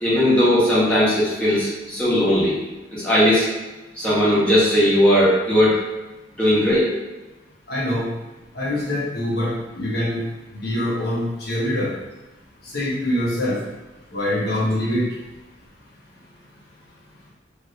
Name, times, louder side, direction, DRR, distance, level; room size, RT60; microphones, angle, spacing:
voice 1, 0.0-2.5 2.9-3.5 3.9-5.8 6.4-6.9, equal, 5° left, -10 dB, 1.1 m, -18 dB
voice 2, 7.7-8.1 8.6-10.2 10.5-11.9 12.7-13.6 14.1-15.0, left 1 dB, 60° left, -5 dB, 0.9 m, -24 dB
3.2 x 2.6 x 2.7 m, 1.1 s
head